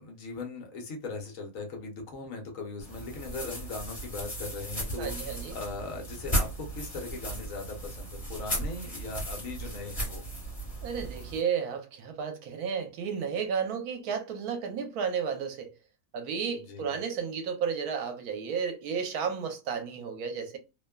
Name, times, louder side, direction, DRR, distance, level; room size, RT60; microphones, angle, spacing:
voice 1, 0.0-10.2 16.5-17.0, left 3 dB, 65° left, 1.1 m, -39 dB
sound 1, 2.8-11.4, right 1 dB, 25° left, 1.3 m, -35 dB
voice 2, 5.0-5.6 10.8-15.7 16.1-20.6, right 6 dB, 85° right, 1.1 m, -32 dB
2.8 x 2.2 x 2.2 m
omnidirectional pair, 1.6 m